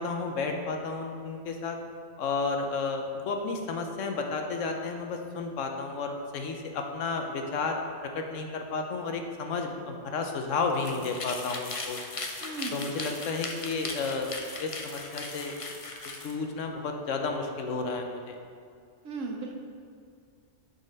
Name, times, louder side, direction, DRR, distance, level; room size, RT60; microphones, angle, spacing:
voice 1, 0.0-1.8 2.2-7.8 8.1-12.0 12.7-14.3 14.6-15.6 16.0-18.4, left 4 dB, 90° left, 3 dB, 1.1 m, -32 dB
sound 1, 10.7-16.3, left 3 dB, 40° left, 0.5 m, -38 dB
voice 2, 12.4-12.8 19.0-19.5, right 3 dB, 90° right, 2 dB, 1.2 m, -35 dB
6.8 x 4.1 x 5.2 m, 2.3 s
omnidirectional pair, 1.2 m